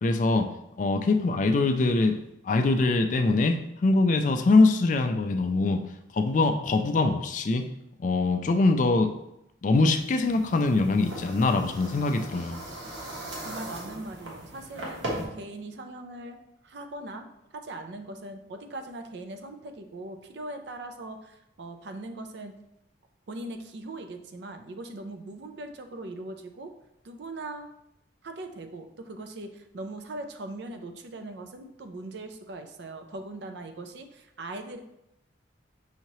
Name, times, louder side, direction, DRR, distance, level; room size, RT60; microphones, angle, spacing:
voice 1, 0.0-0.5 0.8-2.2 2.4-5.8 6.1-7.6 8.0-9.1 9.6-12.6, left 3 dB, 40° left, 7 dB, 0.3 m, -23 dB
sound 1, 9.9-15.2, right 1 dB, 85° right, 1.2 m, -39 dB
voice 2, 13.4-15.0 15.3-16.4 16.6-22.5 23.3-26.7 27.0-27.7 28.2-34.8, right 2 dB, 65° right, 6 dB, 0.4 m, -40 dB
5.6 x 2.8 x 3.0 m, 0.82 s
head